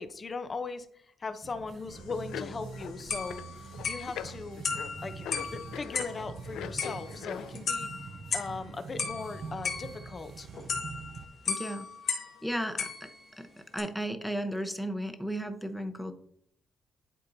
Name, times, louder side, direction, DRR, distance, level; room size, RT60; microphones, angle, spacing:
voice 1, 0.0-4.6 5.0-7.9 8.3-10.5, left 4 dB, 35° left, 10 dB, 0.7 m, -39 dB
sound 1, 1.4-11.3, right 5 dB, 55° right, 0.6 m, -44 dB
sound 2, 1.9-7.6, left 10 dB, 80° left, 0.3 m, -42 dB
sound 3, 2.7-2.8 3.1-6.3 6.8-8.6 9.0-12.4 12.8-13.4 13.8-13.9, left 5 dB, 60° left, 1.5 m, -36 dB
voice 2, 11.5-12.2 12.4-12.9 13.4-13.5 13.7-16.1, equal, 5° left, 6 dB, 0.9 m, -34 dB
11.0 x 4.3 x 2.7 m, 0.68 s
cardioid pair, 90°, 0 cm